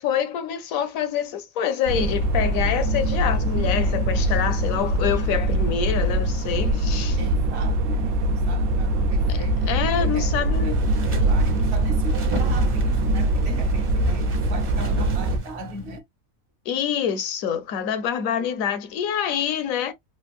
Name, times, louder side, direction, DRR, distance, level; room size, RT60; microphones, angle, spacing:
voice 1, 0.0-7.2 9.3-10.8 16.7-19.9, left 8 dB, 75° left, 1.1 m, -26 dB
sound 1, 1.9-15.4, right 1 dB, 85° right, 1.0 m, -22 dB
voice 2, 7.2-9.6 10.0-16.0, right 2 dB, 60° right, 0.8 m, -38 dB
sound 2, 10.5-16.0, equal, 40° right, 0.5 m, -34 dB
3.5 x 2.4 x 2.3 m
omnidirectional pair, 1.5 m